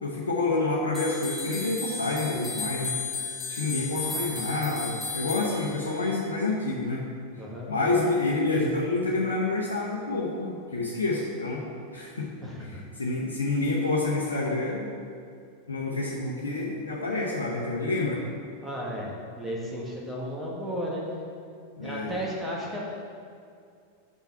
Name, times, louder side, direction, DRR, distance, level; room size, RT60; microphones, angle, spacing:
voice 1, 0.0-3.0 3.5-7.0 7.7-11.6 11.9-12.3 12.7-14.9 15.7-18.2 21.8-22.2, left 2 dB, 70° left, -5 dB, 1.0 m, -28 dB
sound 1, 0.9-6.2, left 4 dB, 10° left, 2.0 m, -35 dB
voice 2, 7.4-7.7 12.4-12.8 18.6-21.0 21.8-22.8, equal, 5° right, -4 dB, 1.6 m, -34 dB
6.8 x 5.9 x 5.7 m, 2.3 s
figure-of-eight pair, 90°, 0 cm